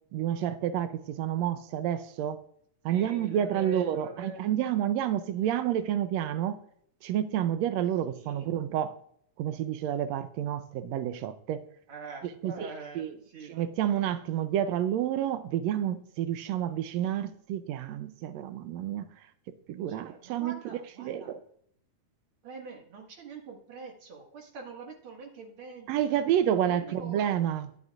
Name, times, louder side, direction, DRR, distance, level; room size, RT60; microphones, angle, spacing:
voice 1, 0.1-2.4 2.8-6.6 7.0-8.9 9.4-11.6 12.4-13.1 13.5-19.0 19.7-21.4 25.9-27.7, right 10 dB, 90° right, 11 dB, 1.5 m, -29 dB
voice 2, 2.9-4.4 8.1-8.5 11.9-13.6 19.9-21.3 22.4-26.2 26.6-27.4, right 4 dB, 45° right, 1 dB, 2.3 m, -44 dB
12.0 x 11.0 x 2.4 m, 0.66 s
omnidirectional pair, 3.7 m